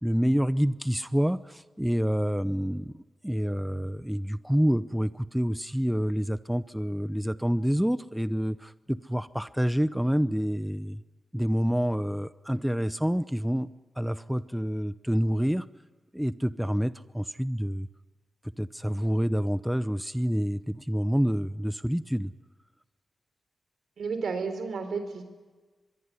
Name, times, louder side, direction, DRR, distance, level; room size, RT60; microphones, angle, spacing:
voice 1, 0.0-11.0 11.3-13.7 14.0-15.7 16.1-17.9 18.6-22.3, equal, 5° right, 15 dB, 0.8 m, -27 dB
voice 2, 24.0-25.2, right 4 dB, 75° right, 9 dB, 3.8 m, -32 dB
24.5 x 22.0 x 9.7 m, 1.3 s
cardioid pair, 55°, 0 cm